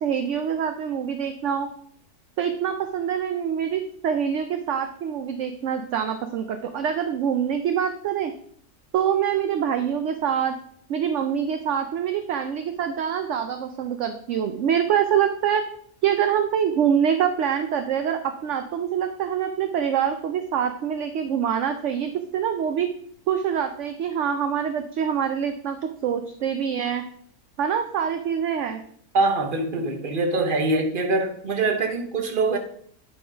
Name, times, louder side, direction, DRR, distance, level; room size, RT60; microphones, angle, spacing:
voice 1, 0.0-1.7 2.4-8.3 8.9-10.6 10.9-15.6 16.0-22.9 23.3-27.0 27.6-28.8, right 8 dB, 65° right, 7 dB, 0.8 m, -25 dB
voice 2, 29.1-32.6, right 3 dB, 40° right, 5 dB, 1.1 m, -23 dB
10.0 x 4.0 x 5.1 m, 0.64 s
omnidirectional pair, 1.6 m